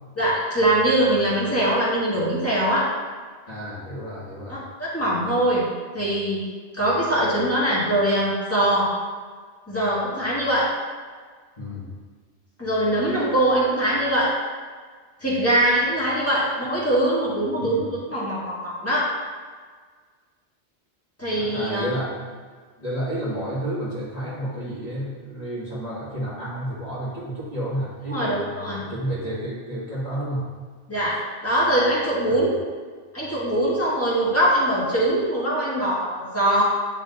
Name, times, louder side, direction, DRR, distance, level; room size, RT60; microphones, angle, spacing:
voice 1, 0.2-2.9 4.5-5.7 5.9-6.4 6.7-8.9 9.7-10.7 12.6-14.3 15.2-19.1 21.2-21.8 28.1-28.8 30.9-31.2 31.4-32.6 33.1-36.6, right 1 dB, 15° left, -8 dB, 1.7 m, -22 dB
voice 2, 3.5-4.6 11.6-11.9 17.6-17.9 21.4-22.1 22.8-30.5 32.3-32.5, equal, 35° left, -10 dB, 1.9 m, -31 dB
9.7 x 3.8 x 2.6 m, 1.5 s
omnidirectional pair, 1.2 m